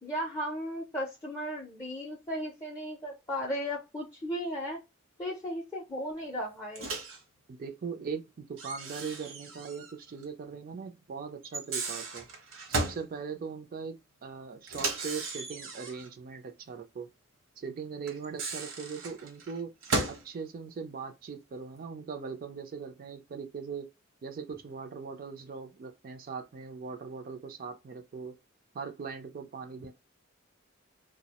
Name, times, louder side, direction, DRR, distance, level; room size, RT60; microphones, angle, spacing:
voice 1, 0.0-4.8 5.2-6.9, equal, 15° left, 0.4 m, -35 dB
Microwave oven, 6.8-7.2 8.6-9.9 10.2-10.3 11.4-13.1 14.7-16.1 18.1-20.3, right 3 dB, 70° right, 0.8 m, -35 dB
voice 2, 7.5-12.3 12.7-17.1 17.6-19.7 20.1-23.9 24.2-28.3 28.7-29.9, right 5 dB, 45° right, 0.4 m, -40 dB
2.3 x 2.0 x 2.8 m
head